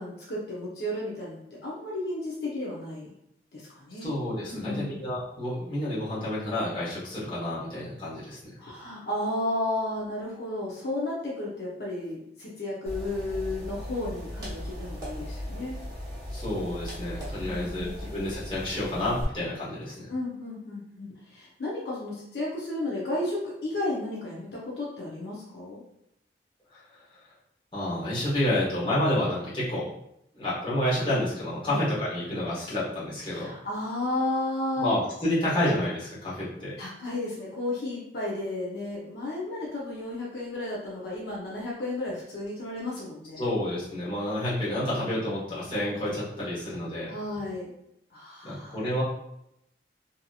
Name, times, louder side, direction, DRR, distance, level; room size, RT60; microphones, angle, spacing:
voice 1, 0.0-3.1 3.5-4.1 4.5-5.0 8.6-15.8 17.4-18.1 20.1-25.8 31.6-31.8 33.3-35.0 36.8-43.5 47.1-47.7 48.1-48.9, left 1 dB, 65° left, -5 dB, 0.6 m, -33 dB
voice 2, 4.0-8.4 16.3-20.1 26.7-26.8 27.7-29.9 30.3-33.5 34.8-36.7 43.4-47.1 48.4-49.0, left 1 dB, 30° left, -9 dB, 1.1 m, -29 dB
sound 1, 12.8-19.2, equal, 20° right, 1.0 m, -38 dB
2.8 x 2.7 x 2.3 m, 0.80 s
head